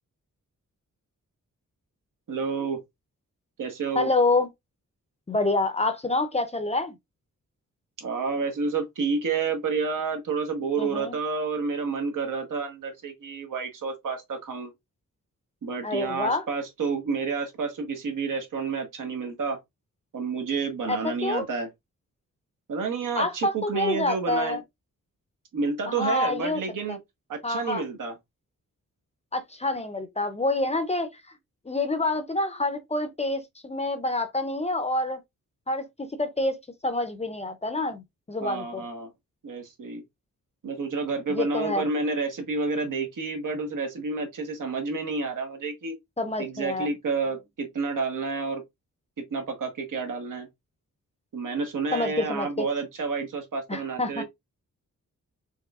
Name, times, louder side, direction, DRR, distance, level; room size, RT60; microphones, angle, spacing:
voice 1, 2.3-2.8 3.6-4.1 8.0-14.7 15.6-19.6 20.1-21.7 22.7-24.6 25.5-27.0 27.3-28.1 38.4-39.1 39.4-40.0 40.6-46.0 46.4-48.6 49.3-50.5 51.3-54.2, right 4 dB, 80° right, 1.2 m, -30 dB
voice 2, 4.0-4.5 5.3-6.9 10.8-11.2 15.8-16.4 20.9-21.5 23.2-24.6 25.9-26.6 26.9-27.0 27.4-27.8 29.3-31.2 31.7-35.2 35.7-38.8 41.3-41.8 46.2-46.9 51.9-52.7 53.7-54.2, left 2 dB, 20° left, 0.4 m, -27 dB
4.6 x 3.1 x 2.3 m
wide cardioid pair, 175°, 31 cm